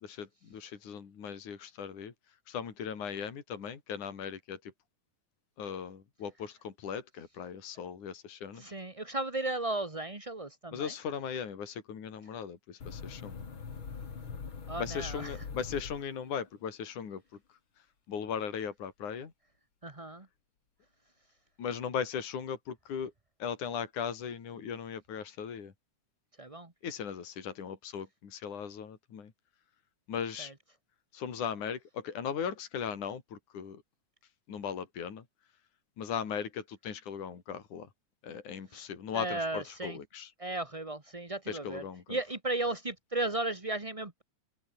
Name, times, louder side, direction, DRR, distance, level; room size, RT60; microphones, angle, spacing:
voice 1, 0.0-2.1 2.5-4.7 5.6-8.6 10.7-13.4 14.8-17.2 18.1-19.3 21.6-23.1 23.4-25.7 26.8-29.3 30.1-30.5 31.1-33.8 34.5-35.2 36.0-37.9 38.2-40.3 41.5-42.2, left 7 dB, 70° left, 4.6 m, -38 dB
voice 2, 8.5-10.9 14.7-15.3 19.8-20.3 26.4-26.7 30.4-30.5 38.7-38.8 39.1-40.0 40.4-41.8 42.1-44.2, right 2 dB, 20° right, 0.8 m, -35 dB
sound 1, 12.8-16.6, left 6 dB, 40° left, 3.1 m, -42 dB
open air
omnidirectional pair, 3.6 m